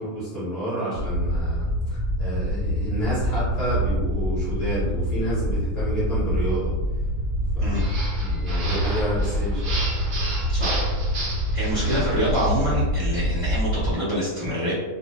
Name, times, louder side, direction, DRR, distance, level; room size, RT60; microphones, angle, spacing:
voice 1, 0.0-1.7 2.2-6.7 7.6-7.8 8.2-9.8, right 1 dB, 45° left, -11 dB, 0.8 m, -29 dB
sound 1, 0.9-13.9, equal, 85° left, 1.1 m, -25 dB
sound 2, 7.7-12.6, right 2 dB, 70° right, 0.5 m, -33 dB
voice 2, 10.5-10.8 11.5-14.7, equal, 5° right, -14 dB, 1.0 m, -26 dB
2.5 x 2.2 x 2.2 m, 1.2 s
omnidirectional pair, 1.5 m